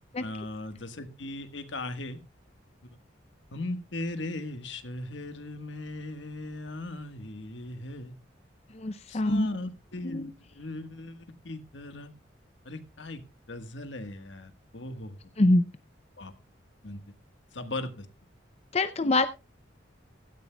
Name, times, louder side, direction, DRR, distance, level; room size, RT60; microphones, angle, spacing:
voice 1, 0.2-2.2 3.5-8.1 9.1-12.1 12.6-13.2 13.5-15.2 16.2-16.3 16.8-17.0 17.5-18.1, left 2 dB, 80° left, 9 dB, 1.5 m, -38 dB
voice 2, 8.7-9.5 10.0-10.3 15.4-15.6 18.7-19.3, left 2 dB, 35° left, 11 dB, 0.5 m, -24 dB
16.5 x 13.0 x 2.3 m, 0.28 s
head